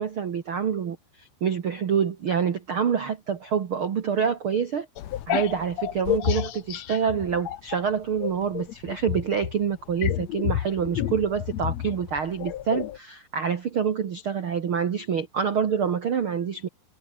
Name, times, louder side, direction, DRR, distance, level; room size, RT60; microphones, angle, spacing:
voice 1, 0.0-4.9 5.3-16.7, right 7 dB, 90° right, 1.1 m, -26 dB
sound 1, 5.0-7.8 8.2-13.0, left 12 dB, 80° left, 1.5 m, -30 dB
omnidirectional pair, 4.9 m